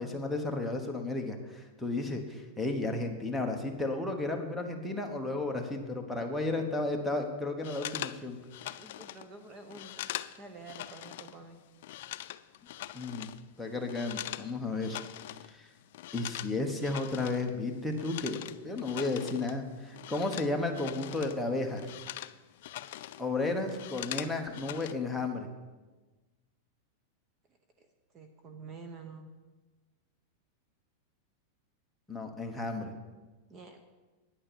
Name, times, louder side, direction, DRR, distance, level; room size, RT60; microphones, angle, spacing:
voice 1, 0.0-8.4 12.9-13.3 13.6-15.0 15.4-15.7 16.1-18.4 18.6-21.8 23.2-25.5 32.1-32.9, left 2 dB, 5° left, 1 dB, 1.1 m, -33 dB
sound 1, 7.6-11.4 11.6-14.5 14.8-15.5 15.8-21.4 21.7-23.3 23.5-24.9, left 14 dB, 60° left, 0.4 m, -42 dB
voice 2, 8.8-10.0 10.4-11.6 20.4-20.5 27.8-27.9 28.1-29.3 33.5-33.8, right 4 dB, 25° right, 7 dB, 0.8 m, -48 dB
10.0 x 8.7 x 6.9 m, 1.2 s
supercardioid pair, 160°, 0 cm